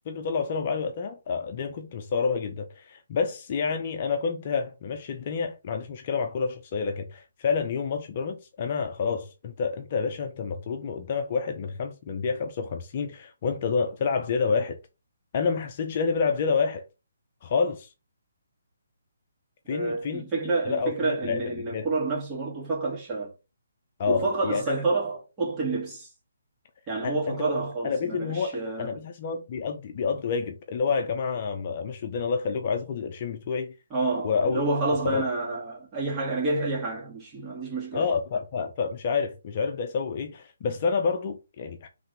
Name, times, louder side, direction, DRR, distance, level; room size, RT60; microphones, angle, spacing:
voice 1, 0.1-14.8 15.3-16.8 17.4-17.9 19.7-21.9 24.0-24.6 27.0-27.4 27.8-33.7 34.2-34.6 35.0-35.2 37.9-41.9, left 5 dB, 40° left, 0.7 m, -28 dB
voice 2, 19.7-23.3 24.1-26.1 26.9-28.9 33.9-38.1, right 3 dB, 20° right, 2.1 m, -29 dB
3.8 x 3.3 x 3.4 m
hypercardioid pair, 150°, 0 cm